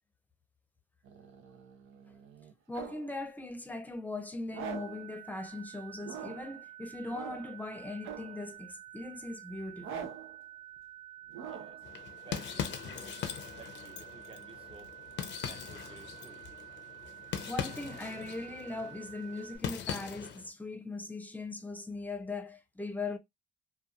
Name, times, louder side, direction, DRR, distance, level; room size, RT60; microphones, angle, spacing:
sound 1, 1.1-3.1 4.5-5.1 6.0-6.6 7.1-7.6 8.0-8.5 9.8-10.4 11.3-11.9, right 7 dB, 85° right, 0.6 m, -44 dB
voice 1, 2.7-10.1 17.5-23.2, left 2 dB, 10° left, 0.6 m, -40 dB
sound 2, 4.6-19.6, right 14 dB, 55° right, 0.9 m, -50 dB
voice 2, 11.3-11.8 12.2-13.2 13.5-14.9 15.4-16.4, right 4 dB, 25° right, 0.7 m, -54 dB
sound 3, 11.8-20.5, left 8 dB, 65° left, 0.6 m, -41 dB
2.8 x 2.3 x 2.3 m
cardioid pair, 90°, 20 cm